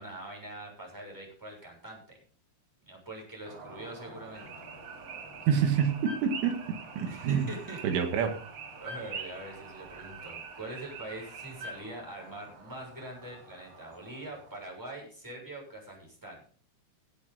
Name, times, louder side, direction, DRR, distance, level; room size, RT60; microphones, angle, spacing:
voice 1, 0.0-2.0 2.8-4.5 7.1-7.8 8.8-16.4, right 1 dB, 5° right, -2 dB, 6.4 m, -43 dB
sound 1, 3.4-15.0, right 3 dB, 40° right, 4.9 m, -51 dB
sound 2, 4.3-11.8, right 5 dB, 70° right, 1.7 m, -44 dB
voice 2, 5.5-6.6 7.0-7.5 7.8-8.4, right 7 dB, 85° right, 5 dB, 4.3 m, -27 dB
16.5 x 10.5 x 4.2 m, 0.43 s
omnidirectional pair, 5.5 m